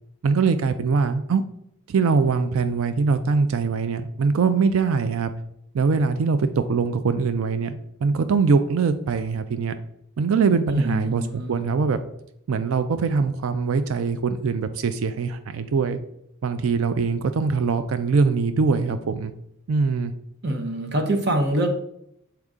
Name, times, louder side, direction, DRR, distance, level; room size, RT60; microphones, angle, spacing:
voice 1, 0.2-1.4 1.9-5.3 5.7-7.7 8.0-9.8 10.2-12.0 12.5-16.0 16.4-19.3 19.7-20.1, right 5 dB, 80° right, 10 dB, 0.4 m, -22 dB
voice 2, 10.7-11.6 20.4-21.7, right 1 dB, 55° right, 5 dB, 0.8 m, -25 dB
6.5 x 4.6 x 3.6 m, 0.76 s
head